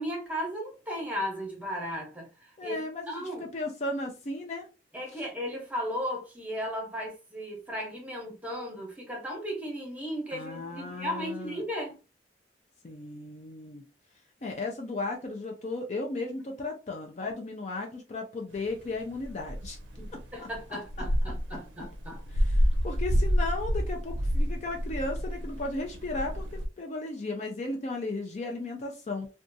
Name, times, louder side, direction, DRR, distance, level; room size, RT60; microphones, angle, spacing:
voice 1, 0.0-3.5 4.9-12.0 20.0-22.2, equal, 10° right, 0.8 m, -36 dB
voice 2, 2.6-4.7 10.3-11.6 12.8-13.8 14.4-19.8 21.2-21.6 22.5-29.3, left 2 dB, 40° left, 0.4 m, -35 dB
sound 1, 18.5-26.7, equal, 85° right, 0.6 m, -29 dB
2.7 x 2.2 x 2.6 m
head